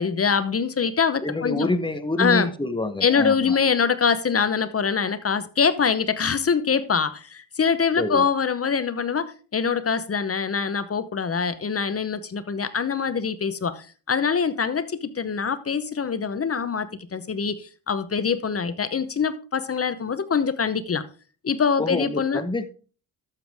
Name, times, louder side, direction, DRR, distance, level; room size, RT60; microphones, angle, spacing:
voice 1, 0.0-1.7 2.2-2.5 3.0-21.0 21.4-22.4, left 6 dB, 30° left, 0.8 m, -24 dB
voice 2, 1.2-3.6 8.0-8.2 21.8-22.7, left 2 dB, 10° left, 1.0 m, -27 dB
12.5 x 7.2 x 3.5 m
cardioid pair, 100°, 44 cm